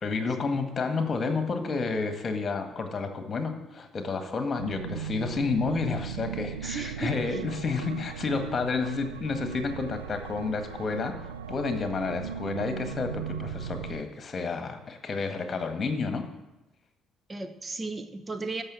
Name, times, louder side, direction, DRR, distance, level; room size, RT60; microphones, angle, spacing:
voice 1, 0.0-11.1 11.5-16.2, left 4 dB, 35° left, 6 dB, 1.7 m, -30 dB
sound 1, 4.6-14.0, right 8 dB, 80° right, 0.4 m, -38 dB
voice 2, 6.6-7.4 17.3-18.6, right 3 dB, 25° right, 9 dB, 0.9 m, -35 dB
13.0 x 5.8 x 7.3 m, 0.99 s
figure-of-eight pair, 50°, 0 cm